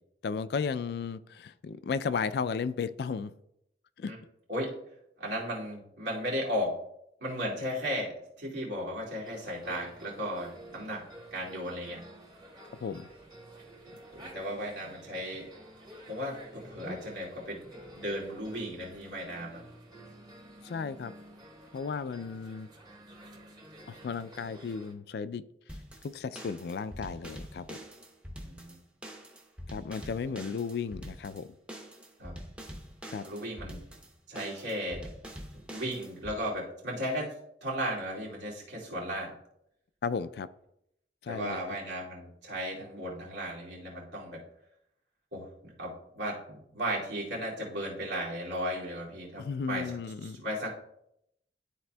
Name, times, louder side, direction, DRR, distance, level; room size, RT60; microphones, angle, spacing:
voice 1, 0.2-3.3 4.0-4.1 12.8-13.1 20.6-21.1 21.7-22.7 23.9-25.4 26.0-27.8 29.7-31.5 33.1-33.2 40.0-40.5 41.2-41.6 49.4-50.4, left 5 dB, 65° left, 0.3 m, -34 dB
voice 2, 5.2-6.8 7.2-11.0 11.3-12.0 13.9-15.5 16.1-17.6 17.9-19.6 28.4-28.8 32.2-32.3 33.2-33.8 34.3-35.1 35.7-37.3 37.6-39.3 41.3-44.4 45.3-50.7, equal, 90° right, 2.4 m, -35 dB
sound 1, 9.2-24.9, right 1 dB, 25° right, 1.2 m, -50 dB
sound 2, 25.7-36.4, equal, 5° right, 0.7 m, -45 dB
12.0 x 4.1 x 2.2 m
head